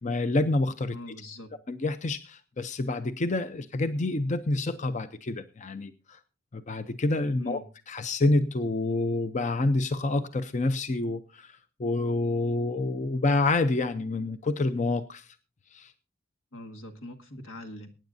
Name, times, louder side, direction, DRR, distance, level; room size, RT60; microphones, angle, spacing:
voice 1, 0.0-1.0 1.7-6.2 6.5-7.6 7.9-15.3 15.7-15.9, left 2 dB, 35° left, 11 dB, 0.6 m, -28 dB
voice 2, 0.9-1.5 7.4-7.7 16.5-17.9, left 1 dB, 85° left, 6 dB, 1.9 m, -42 dB
23.0 x 9.6 x 2.7 m, 0.31 s
head